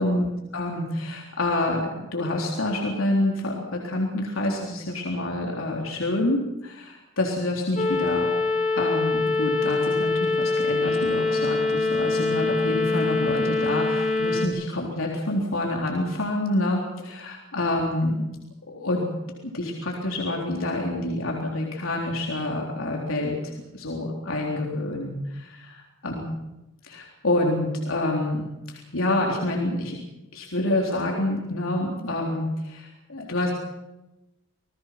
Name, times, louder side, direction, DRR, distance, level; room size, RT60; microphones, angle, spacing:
voice 1, 0.0-8.3 8.8-18.3 18.7-19.1 19.4-23.4 23.7-25.2 26.0-26.2 26.8-30.0 30.3-33.5, left 1 dB, 85° left, -1 dB, 3.8 m, -27 dB
sound 1, 7.8-14.5, left 3 dB, 35° left, 3.1 m, -24 dB
27.5 x 19.5 x 6.0 m, 0.97 s
head